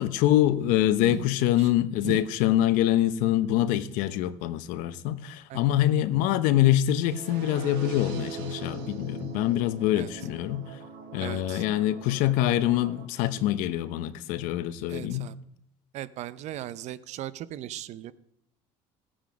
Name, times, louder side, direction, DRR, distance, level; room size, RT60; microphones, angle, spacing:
voice 1, 0.0-10.8 11.1-15.3, left 13 dB, 75° left, 0.8 m, -25 dB
sound 1, 7.0-13.0, right 7 dB, 85° right, 2.7 m, -41 dB
voice 2, 11.2-11.6 14.9-15.4 15.9-18.1, right 12 dB, 55° right, 0.7 m, -37 dB
16.5 x 8.9 x 5.1 m
cardioid pair, 115°, 14 cm